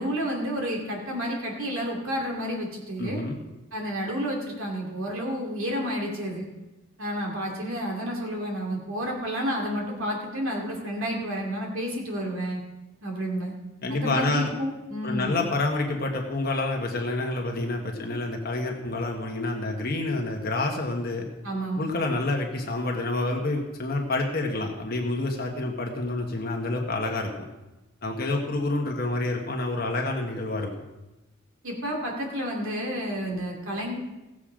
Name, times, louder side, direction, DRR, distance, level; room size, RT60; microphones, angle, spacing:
voice 1, 0.0-3.2 3.7-6.5 7.0-12.6 13.0-13.5 13.9-15.3 21.4-21.9 31.6-34.0, equal, 70° right, 0 dB, 2.5 m, -30 dB
voice 2, 3.0-3.4 13.8-14.5 15.0-21.3 21.8-27.5 28.0-30.7, left 2 dB, 45° left, 1 dB, 1.3 m, -28 dB
16.5 x 7.5 x 5.0 m, 1.0 s
head